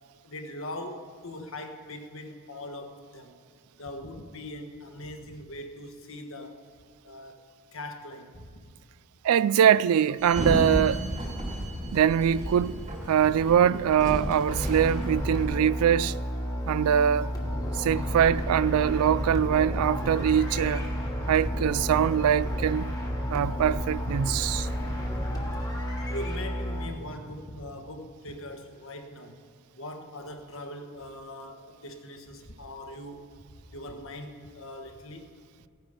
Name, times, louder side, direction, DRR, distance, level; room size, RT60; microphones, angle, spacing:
voice 1, 0.2-3.4 3.8-6.6 7.0-8.5 26.1-29.4 29.8-33.3 33.7-35.3, left 1 dB, 60° left, 1.3 m, -41 dB
voice 2, 9.2-11.0 11.9-12.8 13.1-16.2 16.7-17.3 17.8-20.9 21.3-22.9 23.3-24.7, right 9 dB, 75° right, 0.3 m, -23 dB
Sliding door, 10.2-15.4, right 1 dB, 35° right, 1.7 m, -32 dB
sound 1, 14.5-26.9, equal, 15° left, 1.2 m, -31 dB
16.0 x 9.0 x 5.2 m
head